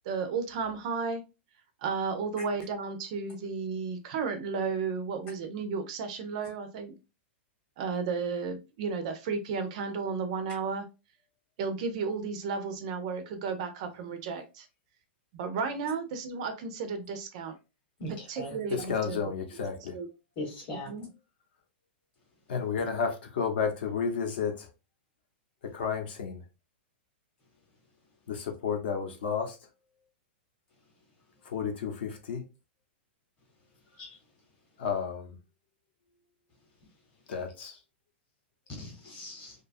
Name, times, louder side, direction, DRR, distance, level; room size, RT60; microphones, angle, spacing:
voice 1, 0.0-1.2 1.8-7.0 7.8-10.8 11.6-14.7 15.3-17.5 18.3-19.3 19.9-20.1 20.9-21.1, right 5 dB, 35° right, 0.4 m, -33 dB
voice 2, 18.0-18.5 20.4-20.9 34.0-34.2 38.8-39.5, left 1 dB, 20° left, 0.8 m, -39 dB
voice 3, 18.7-20.0 22.5-24.7 25.6-26.4 28.3-29.6 31.4-32.4 34.8-35.4 37.3-37.8, left 6 dB, 60° left, 0.7 m, -32 dB
2.7 x 2.3 x 2.4 m
supercardioid pair, 175°, 6 cm